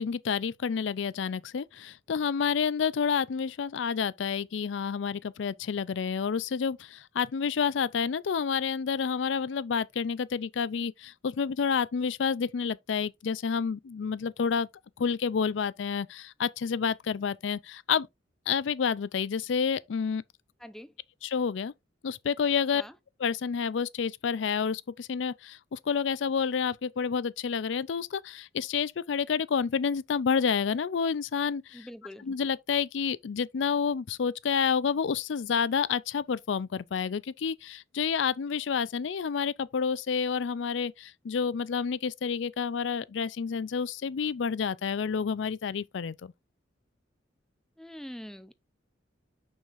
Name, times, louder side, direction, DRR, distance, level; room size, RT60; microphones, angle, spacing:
voice 1, 0.0-14.7 15.0-18.1 18.5-20.2 21.2-21.7 22.0-22.8 23.2-31.9 32.2-46.3, left 6 dB, 75° left, 0.4 m, -29 dB
voice 2, 20.6-20.9 22.7-23.0 31.7-32.2 47.8-48.5, equal, ahead, 0.5 m, -44 dB
6.4 x 6.2 x 2.5 m
head